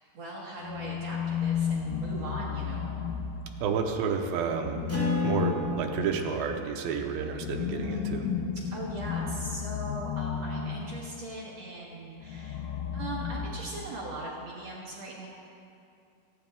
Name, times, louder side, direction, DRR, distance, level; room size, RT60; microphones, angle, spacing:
voice 1, 0.1-3.0 8.5-15.3, right 1 dB, 55° right, -4 dB, 2.0 m, -40 dB
sound 1, 0.6-3.9 4.6-11.2 12.2-14.1, left 8 dB, 85° left, 2.6 m, -33 dB
voice 2, 3.6-4.9 5.2-8.3, right 6 dB, 75° right, 3 dB, 2.6 m, -30 dB
Acoustic guitar, 4.9-9.8, right 2 dB, 5° left, 2.7 m, -37 dB
24.0 x 9.7 x 3.5 m, 2.5 s
omnidirectional pair, 4.6 m